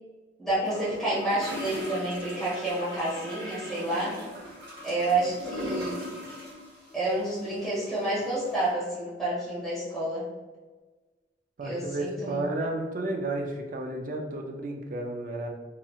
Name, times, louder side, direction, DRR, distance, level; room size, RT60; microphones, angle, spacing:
voice 1, 0.4-4.2 4.8-6.1 6.9-10.2 11.6-12.4, right 1 dB, ahead, -10 dB, 1.3 m, -29 dB
sound 1, 0.7-8.7, left 1 dB, 25° right, 1.3 m, -40 dB
voice 2, 11.6-15.5, right 2 dB, 45° right, 2 dB, 0.4 m, -32 dB
3.0 x 2.8 x 2.3 m, 1.3 s
head